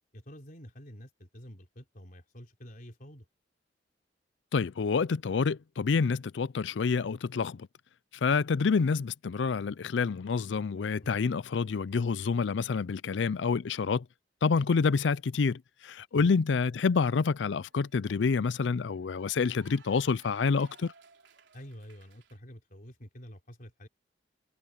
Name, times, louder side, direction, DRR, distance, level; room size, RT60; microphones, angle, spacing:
voice 1, 0.1-3.2 11.0-11.1 16.1-16.3 21.5-23.9, equal, 50° left, 3.8 m, -48 dB
voice 2, 4.5-7.7 8.2-14.0 14.4-20.9, left 5 dB, 75° left, 0.5 m, -28 dB
Cheering / Applause, 16.9-22.4, right 4 dB, 80° right, 3.8 m, -60 dB
head